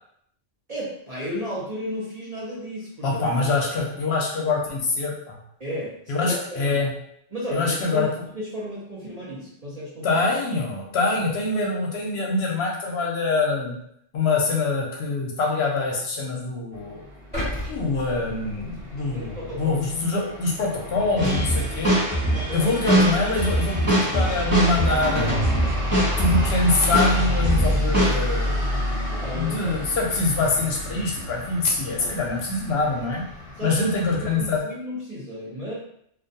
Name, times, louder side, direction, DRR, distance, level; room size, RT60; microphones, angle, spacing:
voice 1, 0.7-3.5 5.6-6.8 7.3-8.1 8.3-10.3 18.0-18.6 19.1-19.8 21.7-21.8 22.3-22.7 29.1-29.9 32.0-32.2 33.6-35.7, equal, 40° right, -8 dB, 0.6 m, -34 dB
voice 2, 3.0-5.4 6.1-6.9 7.5-8.1 10.0-13.8 14.1-17.0 17.7-22.0 22.5-25.6 26.2-28.6 29.3-33.2 33.6-34.6, left 3 dB, 65° left, -1 dB, 0.8 m, -24 dB
sound 1, 16.7-34.6, left 1 dB, 60° right, 1.0 m, -30 dB
sound 2, 17.3-19.5 20.0-20.1, equal, 10° left, 1.2 m, -33 dB
sound 3, 21.2-26.6 26.9-28.1, right 1 dB, 20° right, 1.0 m, -23 dB
2.3 x 2.2 x 2.6 m, 0.71 s
omnidirectional pair, 1.2 m